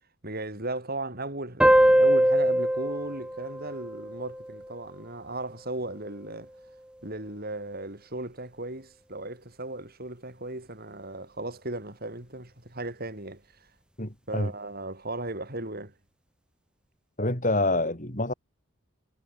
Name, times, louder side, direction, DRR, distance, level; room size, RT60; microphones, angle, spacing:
voice 1, 0.2-6.5 7.0-13.7 14.3-15.9, right 2 dB, 45° right, 5.7 m, -36 dB
sound 1, 1.6-4.7, equal, 5° right, 1.2 m, -22 dB
voice 2, 14.0-14.5 17.2-18.3, left 2 dB, 40° left, 6.7 m, -27 dB
head